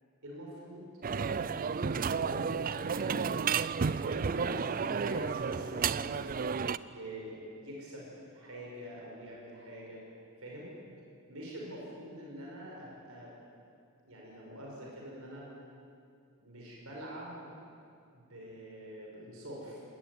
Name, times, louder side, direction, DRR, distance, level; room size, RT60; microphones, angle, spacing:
voice 1, 0.2-2.6 2.8-3.3 4.0-6.5 6.8-10.0 10.4-10.7 11.3-13.3 14.1-15.5 16.4-17.5 18.1-19.8, equal, 70° right, -3 dB, 5.6 m, -45 dB
sound 1, 1.0-6.8, right 6 dB, 40° right, 0.5 m, -32 dB
19.5 x 18.5 x 9.4 m, 2.4 s
head